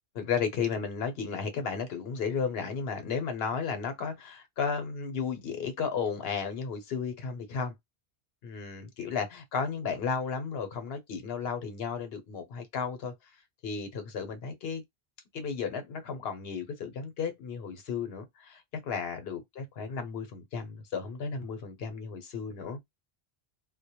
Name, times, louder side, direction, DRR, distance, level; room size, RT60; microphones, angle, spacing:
voice 1, 0.1-7.7 8.4-13.1 13.6-14.8 15.3-22.8, left 6 dB, 70° left, 0.9 m, -34 dB
2.2 x 2.1 x 2.8 m
omnidirectional pair, 1.1 m